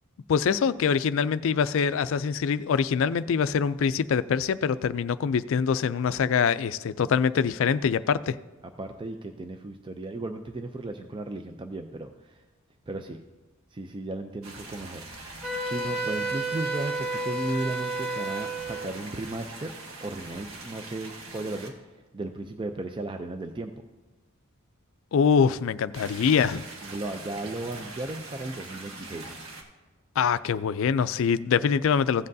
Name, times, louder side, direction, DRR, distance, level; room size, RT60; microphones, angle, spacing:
voice 1, 0.3-8.4 25.1-26.6 30.2-32.3, left 6 dB, 65° left, 15 dB, 0.3 m, -24 dB
voice 2, 8.8-12.4 12.9-13.2 13.7-15.3 15.7-19.7 20.0-21.7 22.1-23.7 26.8-29.3, right 2 dB, 25° right, 6 dB, 0.4 m, -35 dB
sound 1, 14.4-21.7 25.9-29.6, right 2 dB, 70° right, 1.5 m, -43 dB
Wind instrument woodwind instrument, 15.4-18.9, right 2 dB, ahead, 2.0 m, -31 dB
16.0 x 7.6 x 2.7 m, 1.2 s
head